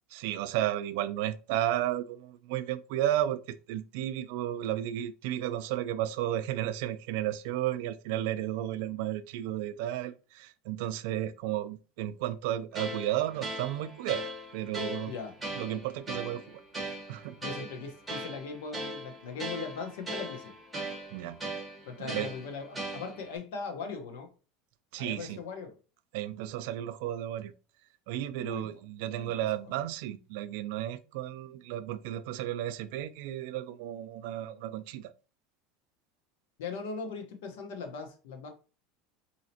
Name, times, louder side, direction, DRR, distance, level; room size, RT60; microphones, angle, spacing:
voice 1, 0.1-14.2 14.5-15.1 15.5-16.6 17.1-17.4 21.1-21.4 22.0-22.3 24.9-25.4 26.1-27.5 28.1-35.1, right 12 dB, 60° right, 0.3 m, -33 dB
sound 1, 12.7-23.4, right 1 dB, 5° right, 1.0 m, -39 dB
voice 2, 15.1-15.4 17.4-20.5 21.8-24.3 25.0-25.7 28.4-28.7 29.2-29.3 29.7-29.8 36.6-38.5, left 4 dB, 85° left, 0.9 m, -39 dB
4.2 x 2.8 x 2.8 m
cardioid pair, 175°, 0 cm